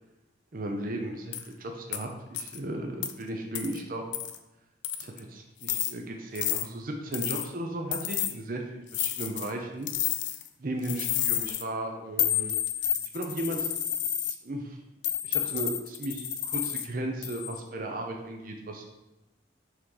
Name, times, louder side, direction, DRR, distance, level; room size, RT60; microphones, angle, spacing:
voice 1, 0.5-4.0 5.0-9.9 10.6-12.5 13.1-13.7 14.4-14.8 15.2-18.8, right 1 dB, 45° right, 2 dB, 0.6 m, -35 dB
sound 1, 1.3-1.5 1.9-2.0 2.3-2.6 3.0-3.1 3.6-3.8 4.1-4.4 4.8-5.2 5.6-5.9 6.4-6.7 7.1-7.5 7.9-8.3 8.9-9.5 9.9-10.5 10.8-11.6 12.2-14.4 15.0-16.9 17.2-17.6, left 11 dB, 70° left, 0.5 m, -30 dB
6.3 x 3.6 x 4.8 m, 0.98 s
head